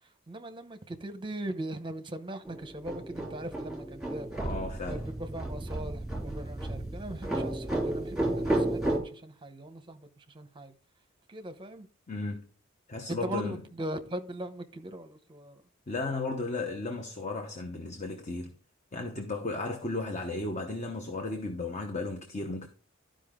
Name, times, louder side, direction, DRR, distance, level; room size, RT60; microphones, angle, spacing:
voice 1, 0.3-4.4 4.9-10.7 11.3-11.9 13.1-15.6, right 1 dB, 25° right, 0.8 m, -40 dB
sound 1, 2.4-9.0, right 1 dB, ahead, 3.2 m, -32 dB
voice 2, 4.4-5.0 12.1-12.4 12.9-13.6 15.9-18.6 18.9-22.7, left 3 dB, 35° left, 1.0 m, -34 dB
12.5 x 5.2 x 3.7 m
head